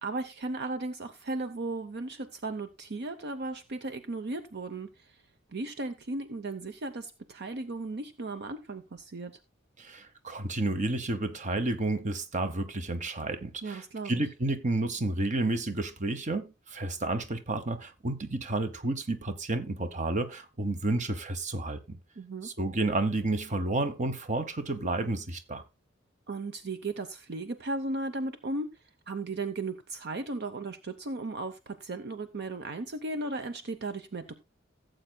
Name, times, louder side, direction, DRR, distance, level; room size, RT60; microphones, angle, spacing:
voice 1, 0.0-5.1 5.5-9.4 13.6-14.2 22.2-22.5 26.3-28.7 29.1-34.4, right 2 dB, 55° right, 0.7 m, -36 dB
voice 2, 9.8-22.0 22.4-25.6, right 2 dB, 40° right, 1.0 m, -31 dB
16.5 x 7.8 x 2.2 m
head